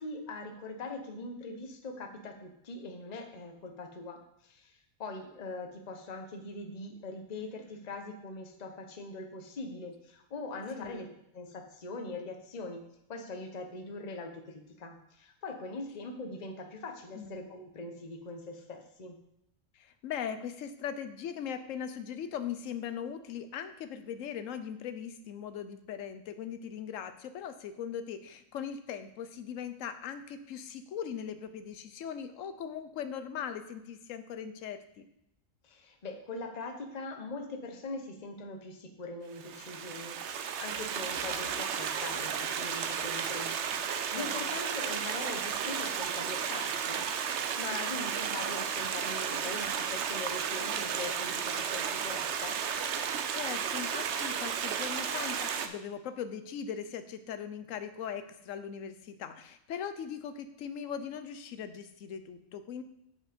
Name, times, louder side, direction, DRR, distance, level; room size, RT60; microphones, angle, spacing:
voice 1, 0.0-11.1 11.3-12.8 13.1-19.2 35.6-43.8 44.1-47.1 47.6-52.6, left 3 dB, 35° left, 4 dB, 1.0 m, -42 dB
voice 2, 17.1-17.5 19.7-35.1 44.1-44.5 53.3-62.8, left 8 dB, 75° left, 10 dB, 1.1 m, -40 dB
Stream, 39.4-55.7, right 7 dB, 65° right, 0.9 m, -33 dB
7.8 x 5.3 x 5.1 m, 0.80 s
omnidirectional pair, 1.4 m